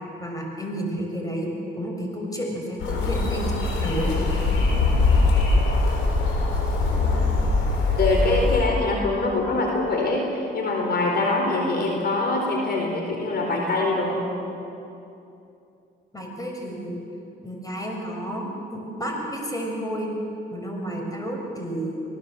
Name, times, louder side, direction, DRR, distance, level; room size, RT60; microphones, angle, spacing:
voice 1, 0.2-1.5 1.8-4.4 16.1-17.0 17.4-20.1 20.5-22.0, equal, 15° left, 1 dB, 6.7 m, -31 dB
sound 1, 2.8-8.6, left 3 dB, 85° left, 6.0 m, -22 dB
voice 2, 8.0-14.3, left 2 dB, 55° left, 1 dB, 4.4 m, -24 dB
26.0 x 19.0 x 7.8 m, 2.8 s
cardioid pair, 90°, 20 cm